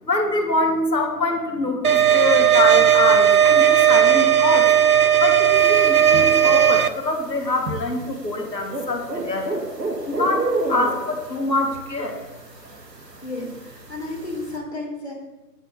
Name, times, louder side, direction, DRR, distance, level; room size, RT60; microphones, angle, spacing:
voice 1, 0.0-4.7 5.2-9.5 10.1-12.2, left 2 dB, 85° left, 2 dB, 1.7 m, -24 dB
sound 1, 1.8-6.9, right 10 dB, 65° right, 0.5 m, -16 dB
sound 2, 5.5-14.6, right 2 dB, 80° right, 1.7 m, -32 dB
voice 2, 13.2-15.1, left 2 dB, 40° left, -2 dB, 2.0 m, -32 dB
8.0 x 4.0 x 6.3 m, 1.1 s
figure-of-eight pair, 175°, 49 cm